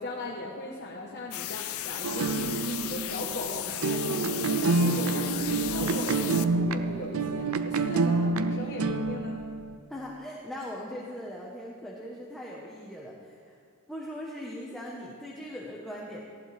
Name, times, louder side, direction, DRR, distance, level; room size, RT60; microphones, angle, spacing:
voice 1, 0.0-9.4, left 2 dB, 50° left, -4 dB, 1.3 m, -38 dB
sound 1, 1.3-6.4, left 13 dB, 80° left, 0.5 m, -35 dB
sound 2, 2.0-9.7, right 3 dB, 75° right, 0.6 m, -28 dB
voice 2, 9.9-13.5 13.9-16.3, equal, ahead, -5 dB, 1.2 m, -40 dB
18.5 x 15.0 x 3.5 m, 2.2 s
head